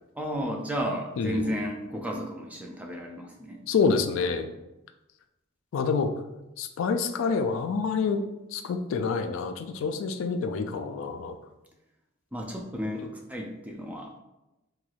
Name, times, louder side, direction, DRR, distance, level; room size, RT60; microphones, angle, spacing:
voice 1, 0.2-3.6 12.3-14.2, equal, 5° right, 1 dB, 0.3 m, -33 dB
voice 2, 1.2-1.5 3.7-4.5 5.7-6.1 6.6-8.2 8.5-11.4, left 5 dB, 75° left, 8 dB, 0.3 m, -27 dB
3.0 x 3.0 x 2.3 m, 0.95 s
head